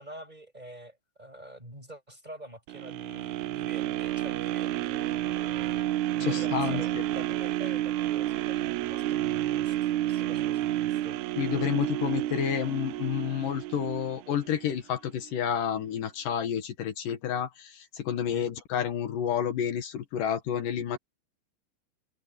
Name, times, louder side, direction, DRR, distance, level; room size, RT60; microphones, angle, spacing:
voice 1, 0.0-11.2 18.3-18.5, right 1 dB, 10° right, 6.6 m, -46 dB
sound 1, 2.7-14.8 15.3-15.4, right 14 dB, 85° right, 1.7 m, -30 dB
voice 2, 6.2-7.0 11.4-21.0, left 9 dB, 75° left, 3.1 m, -30 dB
omnidirectional pair, 3.9 m